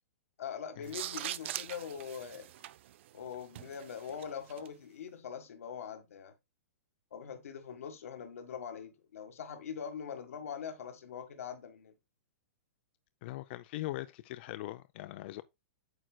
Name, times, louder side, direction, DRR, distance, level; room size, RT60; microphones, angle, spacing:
voice 1, 0.4-2.5 3.1-6.3 7.1-11.9, left 7 dB, 75° left, 1.6 m, -42 dB
sound 1, 0.8-4.7, right 13 dB, 55° right, 0.5 m, -43 dB
voice 2, 13.2-15.4, left 16 dB, 45° left, 0.5 m, -41 dB
9.0 x 6.3 x 2.3 m
hypercardioid pair, 145°, 8 cm